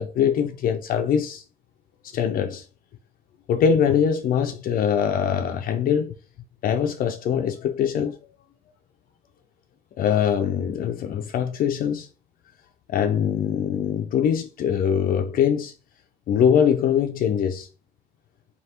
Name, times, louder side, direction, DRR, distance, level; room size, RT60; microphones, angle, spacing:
voice 1, 0.0-1.4 2.1-2.6 3.5-6.1 6.6-8.2 10.0-12.1 12.9-15.7 16.3-17.7, left 8 dB, 55° left, 0.4 m, -22 dB
4.2 x 3.2 x 2.9 m
cardioid pair, 110°, 17 cm